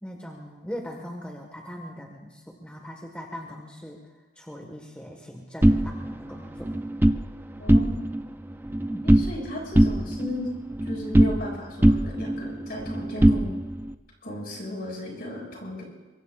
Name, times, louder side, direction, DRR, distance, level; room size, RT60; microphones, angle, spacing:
voice 1, 0.0-4.0 4.4-6.7 8.8-9.1, equal, 5° left, 0 dB, 1.4 m, -40 dB
sound 1, 5.6-7.2 7.6-8.2 8.5-9.4 9.7-11.5 11.8-13.9, right 1 dB, 10° right, 0.4 m, -21 dB
voice 2, 7.6-8.1 9.0-10.5 10.9-13.5 14.2-15.8, left 1 dB, 55° left, 0 dB, 5.6 m, -36 dB
24.0 x 23.0 x 2.4 m, 1.3 s
head